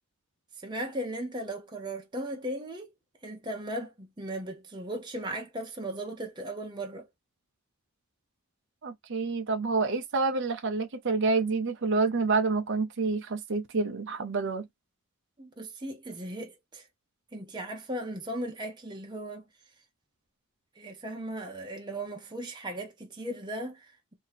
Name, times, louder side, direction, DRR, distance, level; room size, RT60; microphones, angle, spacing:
voice 1, 0.6-2.9 3.2-7.1 15.4-16.8 17.3-19.5 20.8-24.1, right 1 dB, 20° right, 0.8 m, -37 dB
voice 2, 8.8-14.7, right 4 dB, 55° right, 0.6 m, -28 dB
2.8 x 2.7 x 4.0 m
head